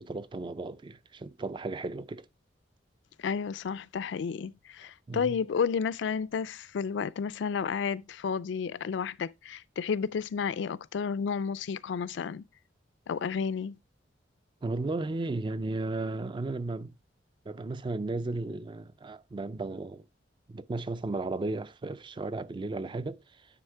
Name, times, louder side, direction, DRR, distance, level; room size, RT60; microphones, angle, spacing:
voice 1, 0.0-2.3 5.1-5.4 14.6-16.9 17.5-20.0 20.5-23.2, right 2 dB, 25° right, 0.3 m, -34 dB
voice 2, 3.2-12.5 13.1-13.8, left 6 dB, 75° left, 0.4 m, -31 dB
9.9 x 3.3 x 4.5 m
head